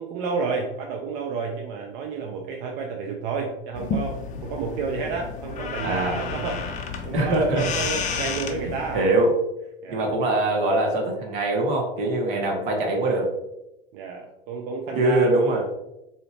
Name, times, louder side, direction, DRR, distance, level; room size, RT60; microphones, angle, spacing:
voice 1, 0.0-6.7 7.0-9.1 9.8-10.1 12.3-12.6 13.9-15.6, right 5 dB, 40° right, 1 dB, 0.5 m, -31 dB
sound 1, 3.7-9.1, left 5 dB, 25° left, 0.5 m, -31 dB
voice 2, 5.8-6.2 7.1-7.6 8.9-9.3 9.9-13.3 15.0-15.6, right 2 dB, 55° right, 1 dB, 1.2 m, -22 dB
3.9 x 2.7 x 3.1 m, 0.90 s
hypercardioid pair, 100°, 30 cm